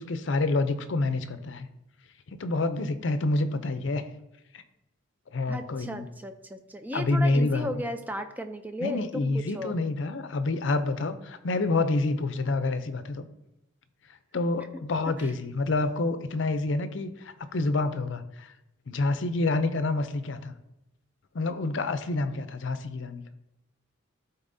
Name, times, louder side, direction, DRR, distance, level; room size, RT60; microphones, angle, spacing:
voice 1, 0.0-1.7 2.3-4.0 4.5-4.6 5.3-6.1 6.9-7.8 8.8-13.2 14.3-18.5 18.9-20.5 21.3-23.2, left 2 dB, 65° left, 11 dB, 0.5 m, -28 dB
voice 2, 5.5-9.7 15.2-15.3, equal, 10° right, 7 dB, 0.4 m, -35 dB
12.0 x 4.1 x 2.7 m, 0.88 s
head